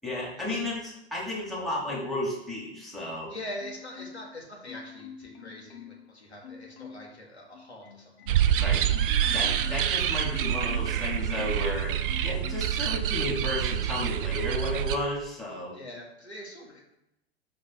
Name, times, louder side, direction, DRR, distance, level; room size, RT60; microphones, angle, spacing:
voice 1, 0.0-3.3 8.6-8.9 9.3-11.9 12.2-15.8, left 1 dB, ahead, -5 dB, 1.7 m, -33 dB
voice 2, 3.3-8.7 15.7-17.0, left 1 dB, 85° left, -2 dB, 1.7 m, -43 dB
Marimba xylophone, 3.6-4.4 4.7-6.1 6.4-7.2 7.5-11.7 12.1-12.8 13.2-13.4, left 6 dB, 65° left, 0.7 m, -46 dB
sound 1, 8.3-15.0, right 10 dB, 55° right, 0.5 m, -27 dB
5.0 x 4.0 x 5.6 m, 0.85 s
figure-of-eight pair, 95°, 32 cm